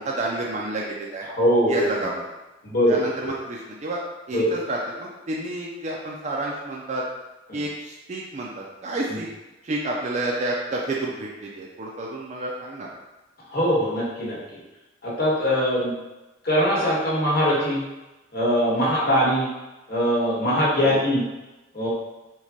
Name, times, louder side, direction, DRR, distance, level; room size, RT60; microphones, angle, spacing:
voice 1, 0.0-1.3 1.7-2.2 2.9-4.0 4.3-7.0 7.5-9.3 9.6-12.9 18.7-18.9 20.7-21.0, right 2 dB, 35° right, -3 dB, 0.4 m, -30 dB
voice 2, 1.4-1.9 2.6-3.3 4.3-4.5 7.5-7.6 9.1-9.2 13.5-14.4 15.0-15.9 16.4-17.8 18.3-19.5 19.9-21.2 21.7-21.9, equal, 55° left, -6 dB, 1.1 m, -22 dB
4.6 x 2.2 x 2.8 m, 1.0 s
head